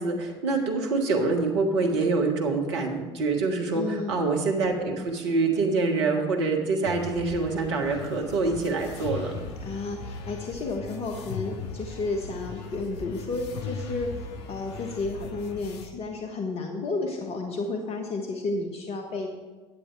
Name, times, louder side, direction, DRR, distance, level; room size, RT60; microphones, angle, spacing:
voice 1, 0.0-9.4, right 3 dB, 75° right, 1 dB, 1.5 m, -26 dB
voice 2, 3.7-4.1 9.6-19.3, left 3 dB, 45° left, 3 dB, 1.2 m, -32 dB
sound 1, 6.8-15.9, left 5 dB, 70° left, 0.9 m, -38 dB
10.0 x 7.9 x 4.7 m, 1.3 s
figure-of-eight pair, 60°, 15 cm